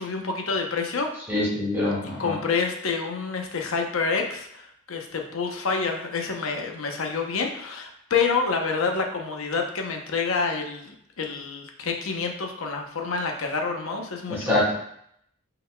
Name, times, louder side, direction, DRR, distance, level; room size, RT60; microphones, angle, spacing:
voice 1, 0.0-1.1 2.2-14.7, left 4 dB, 70° left, 3 dB, 0.8 m, -28 dB
voice 2, 1.3-2.4 14.3-14.7, left 1 dB, 10° right, -8 dB, 1.7 m, -24 dB
5.4 x 4.0 x 2.2 m, 0.70 s
head